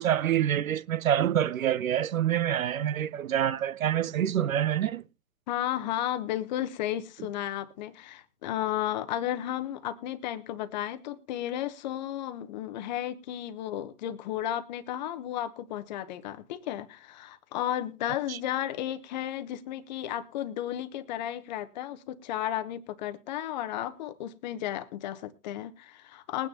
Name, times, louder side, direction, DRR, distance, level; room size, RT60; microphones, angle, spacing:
voice 1, 0.0-5.0 18.3-18.4, right 10 dB, 55° right, 0.6 m, -26 dB
voice 2, 5.5-26.5, left 12 dB, 25° left, 0.8 m, -33 dB
21.0 x 9.5 x 2.7 m
hypercardioid pair, 130°, 49 cm